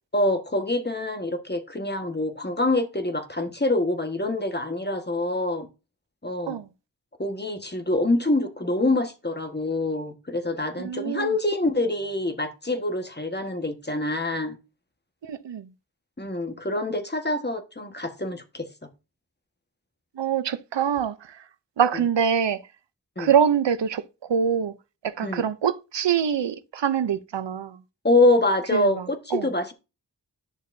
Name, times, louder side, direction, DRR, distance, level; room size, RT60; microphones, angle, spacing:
voice 1, 0.1-5.7 6.2-6.6 7.2-14.6 16.2-18.7 21.9-22.0 23.2-23.3 25.2-25.5 28.0-29.7, left 2 dB, 25° left, 1.4 m, -25 dB
voice 2, 10.8-11.3 15.2-15.7 20.2-21.1 21.8-22.6 23.2-24.0 24.3-24.7 25.0-27.8 28.7-29.0 29.3-29.4, right 8 dB, 90° right, 0.7 m, -24 dB
11.0 x 6.6 x 2.7 m
wide cardioid pair, 50°, 42 cm